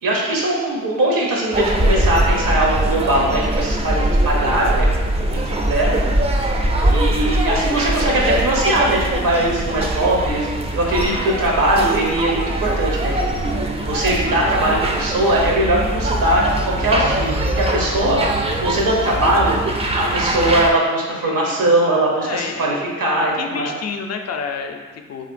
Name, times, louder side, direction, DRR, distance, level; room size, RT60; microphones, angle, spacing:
voice 1, 0.0-4.9 5.1-6.0 6.8-9.0 9.2-10.5 10.7-13.1 13.9-19.5 19.9-23.7, right 1 dB, 75° right, -2 dB, 0.8 m, -20 dB
sound 1, 1.5-20.7, right 1 dB, 20° right, 0.3 m, -21 dB
voice 2, 21.2-21.8 22.2-25.3, left 5 dB, 50° left, 5 dB, 0.4 m, -30 dB
3.0 x 2.7 x 2.5 m, 1.4 s
supercardioid pair, 45°, 34 cm